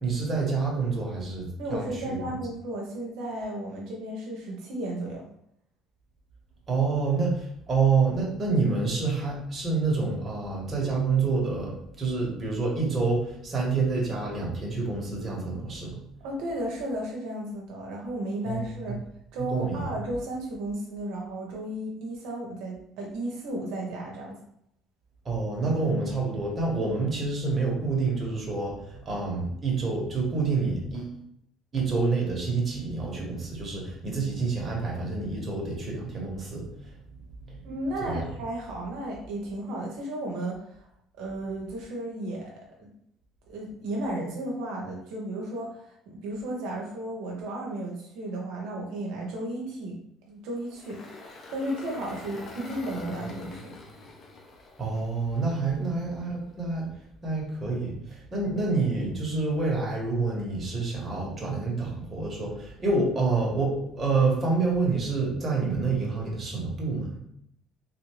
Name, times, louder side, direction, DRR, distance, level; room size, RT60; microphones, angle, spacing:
voice 1, 0.0-2.4 6.7-16.0 18.4-18.6 19.5-19.9 25.2-31.1 31.7-36.6 37.5-37.6 38.0-38.2 54.8-56.9 57.2-67.1, right 4 dB, 30° right, -3 dB, 1.2 m, -27 dB
voice 2, 1.6-5.3 16.2-19.0 19.3-24.4 37.6-40.8 41.2-42.5 42.8-42.9 43.5-50.0 50.3-51.0 51.5-53.7 55.8-56.0, right 1 dB, 80° right, -2 dB, 0.7 m, -34 dB
Engine, 50.6-55.8, left 2 dB, 40° left, 0.7 m, -44 dB
3.4 x 2.5 x 3.1 m, 0.73 s
cardioid pair, 115°, 0 cm